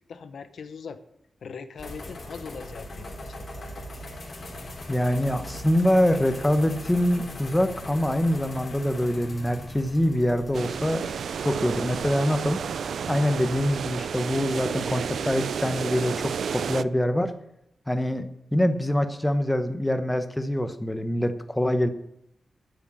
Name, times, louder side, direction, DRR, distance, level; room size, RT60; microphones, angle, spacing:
voice 1, 0.1-1.0 1.4-3.8, left 5 dB, 85° left, 10 dB, 0.9 m, -41 dB
sound 1, 1.8-15.3, left 1 dB, 50° left, 3.4 m, -41 dB
voice 2, 4.9-11.0 11.4-12.6 13.1-17.3 17.9-21.9, equal, 10° left, 8 dB, 1.0 m, -24 dB
sound 2, 10.5-16.8, right 7 dB, 85° right, 0.3 m, -31 dB
9.5 x 8.8 x 6.3 m, 0.76 s
wide cardioid pair, 110°, 0 cm